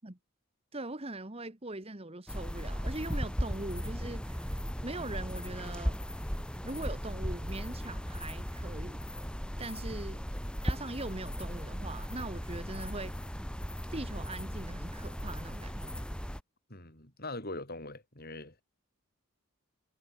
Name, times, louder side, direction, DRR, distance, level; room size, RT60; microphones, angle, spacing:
voice 1, 0.7-6.0 6.6-9.0 9.6-10.2 10.6-13.2 13.9-16.1, right 2 dB, 25° right, 1.6 m, -41 dB
sound 1, 2.3-16.4, equal, 5° left, 4.2 m, -37 dB
voice 2, 16.7-18.6, left 2 dB, 45° left, 6.2 m, -42 dB
head